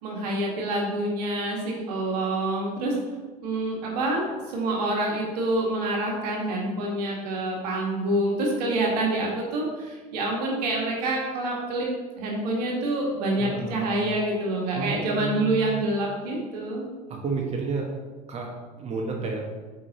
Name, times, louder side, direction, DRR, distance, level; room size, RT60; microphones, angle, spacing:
voice 1, 0.0-3.0 3.4-11.9 12.2-16.9, right 1 dB, 75° right, -2 dB, 1.7 m, -27 dB
voice 2, 13.4-13.9 14.7-15.8 17.1-17.9 18.3-19.4, right 4 dB, 30° right, 0 dB, 1.5 m, -31 dB
8.2 x 5.0 x 3.0 m, 1.3 s
hypercardioid pair, 75°, 21 cm